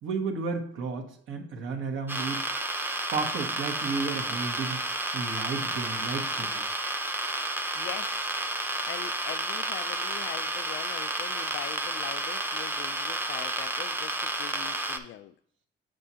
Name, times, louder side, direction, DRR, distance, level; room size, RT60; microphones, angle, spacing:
voice 1, 0.0-2.4 2.9-4.8 5.1-6.8, right 4 dB, 75° right, 1.2 m, -33 dB
sound 1, 2.1-15.0, right 1 dB, 10° right, 0.6 m, -31 dB
voice 2, 7.7-8.3 8.9-15.3, left 12 dB, 75° left, 0.4 m, -42 dB
7.6 x 6.2 x 2.8 m
cardioid pair, 90°, 20 cm